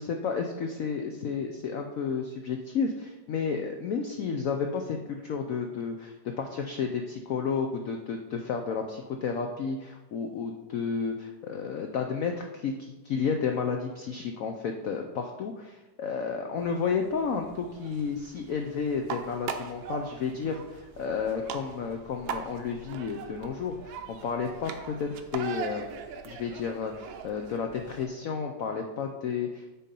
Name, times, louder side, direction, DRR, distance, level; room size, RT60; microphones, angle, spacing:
voice 1, 0.0-25.9 26.2-29.7, left 5 dB, 75° left, 4 dB, 0.7 m, -32 dB
sound 1, 16.6-28.1, right 7 dB, 80° right, 1.4 m, -41 dB
8.2 x 3.9 x 5.3 m, 1.1 s
omnidirectional pair, 2.1 m